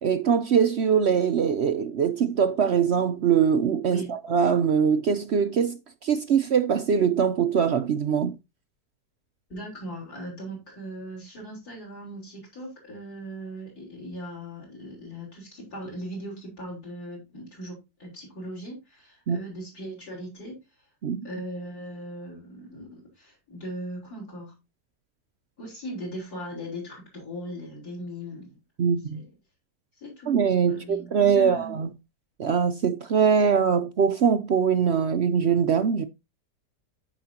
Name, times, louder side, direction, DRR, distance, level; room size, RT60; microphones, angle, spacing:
voice 1, 0.0-8.4 19.3-19.4 21.0-21.2 28.8-29.2 30.3-31.9 32.4-36.0, right 7 dB, 65° right, 0.6 m, -22 dB
voice 2, 9.5-20.6 21.2-24.5 25.6-28.6 29.1-29.3 30.0-30.4 30.7-31.8, equal, 60° left, 5.1 m, -39 dB
14.5 x 5.0 x 2.8 m
omnidirectional pair, 1.8 m